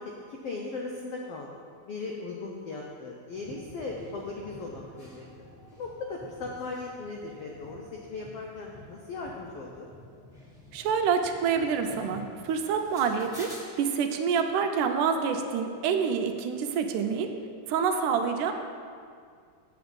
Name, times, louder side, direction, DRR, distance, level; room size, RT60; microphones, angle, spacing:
voice 1, 0.3-1.5 1.8-5.3 5.8-9.9, left 3 dB, 80° left, -1 dB, 1.3 m, -38 dB
sound 1, 3.3-13.6, left 1 dB, 20° left, 1.9 m, -49 dB
voice 2, 10.7-17.3 17.7-18.5, right 6 dB, 85° right, 6 dB, 2.2 m, -27 dB
7.9 x 7.7 x 5.3 m, 2.2 s
omnidirectional pair, 3.6 m